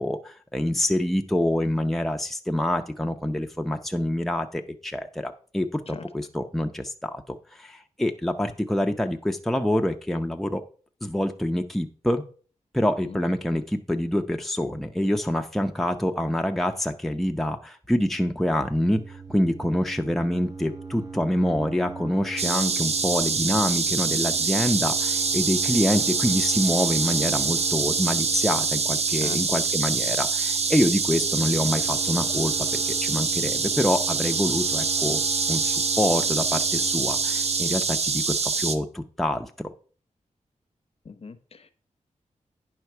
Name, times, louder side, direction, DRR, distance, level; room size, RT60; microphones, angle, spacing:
voice 1, 0.0-10.6 11.0-12.2 12.7-35.2 35.5-39.7, left 1 dB, ahead, 4 dB, 0.6 m, -26 dB
sound 1, 18.7-37.6, right 4 dB, 30° right, 1.1 m, -40 dB
sound 2, 22.4-38.8, right 4 dB, 55° right, 0.7 m, -25 dB
voice 2, 41.0-41.7, left 5 dB, 50° left, 10 dB, 0.8 m, -40 dB
9.6 x 5.7 x 4.4 m, 0.40 s
wide cardioid pair, 130°, 13 cm